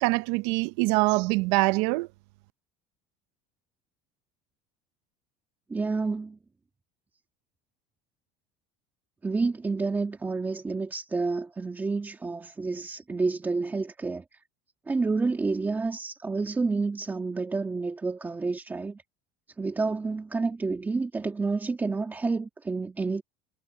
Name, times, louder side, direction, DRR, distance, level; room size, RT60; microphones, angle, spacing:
voice 1, 0.0-2.1, right 24 dB, 75° right, 0.6 m, -24 dB
voice 2, 5.7-6.4 9.2-14.2 14.9-19.0 19.6-23.2, right 3 dB, 10° right, 1.9 m, -29 dB
cardioid pair, 170°, 17 cm